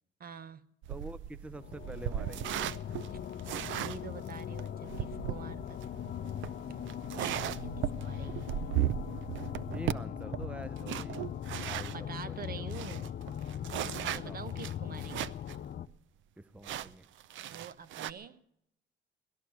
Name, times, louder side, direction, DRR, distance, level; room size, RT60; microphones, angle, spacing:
voice 1, 0.2-0.6 3.8-6.2 6.6-6.9 7.1-8.5 11.9-13.2 13.9-15.3 17.5-18.4, right 7 dB, 50° right, 15 dB, 0.8 m, -46 dB
sound 1, 0.8-12.0 12.4-12.5 12.7-15.6 15.9-16.0 16.6-18.1, right 11 dB, 75° right, 0.5 m, -37 dB
voice 2, 0.9-2.6 9.7-11.3 11.6-12.9 14.1-14.4 16.4-17.1, right 1 dB, 5° right, 16 dB, 0.5 m, -46 dB
sound 2, 1.5-15.9, left 10 dB, 50° left, 0.5 m, -40 dB
18.0 x 13.0 x 6.2 m, 0.78 s
cardioid pair, 90°, 20 cm